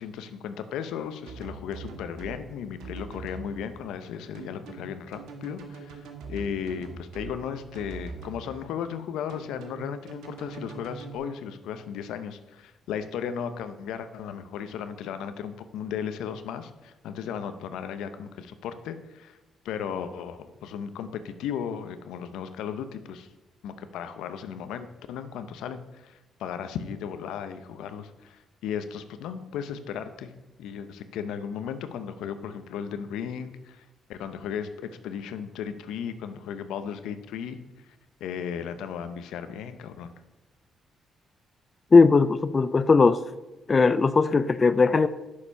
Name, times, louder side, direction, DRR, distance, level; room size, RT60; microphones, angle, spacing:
voice 1, 0.0-19.4 19.6-23.3 23.6-30.3 30.6-33.8 34.1-37.6 38.2-40.1, left 8 dB, 90° left, 10 dB, 0.8 m, -35 dB
sound 1, 1.3-2.4 2.8-3.5 4.3-7.3 7.7-8.4 9.3-11.1, right 4 dB, 85° right, 1.4 m, -42 dB
voice 2, 41.9-43.2 43.7-45.1, left 4 dB, 35° left, 13 dB, 0.4 m, -18 dB
9.8 x 6.6 x 5.6 m, 1.0 s
cardioid pair, 90°, 0 cm